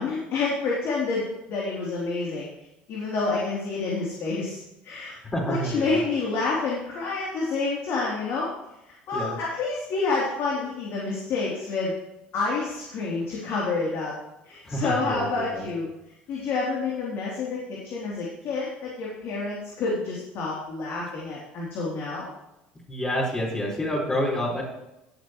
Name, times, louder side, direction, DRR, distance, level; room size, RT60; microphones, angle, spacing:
voice 1, 0.0-2.5 2.9-5.2 5.5-8.5 9.1-11.9 12.3-14.1 14.5-15.9 16.3-22.3, left 3 dB, 60° left, -5 dB, 3.6 m, -28 dB
voice 2, 5.3-6.0 9.1-9.4 14.6-15.3 15.5-15.7 22.9-24.6, equal, 25° left, -6 dB, 5.3 m, -28 dB
18.5 x 8.1 x 3.3 m, 0.91 s
hypercardioid pair, 70°, 5 cm